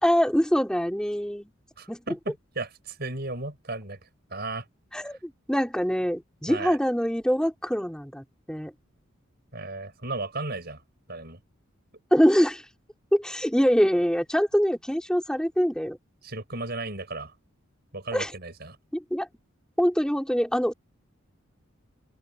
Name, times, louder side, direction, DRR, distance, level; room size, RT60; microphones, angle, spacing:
voice 1, 0.0-1.5 1.9-2.0 4.9-8.7 12.1-12.6 13.1-16.0 18.1-18.3 18.9-19.3 19.8-20.7, equal, 5° left, 3.4 m, -24 dB
voice 2, 1.8-4.0 4.3-4.7 6.5-6.8 9.5-10.8 11.1-11.4 16.2-17.3 17.9-18.8, right 2 dB, 55° right, 5.3 m, -35 dB
open air
head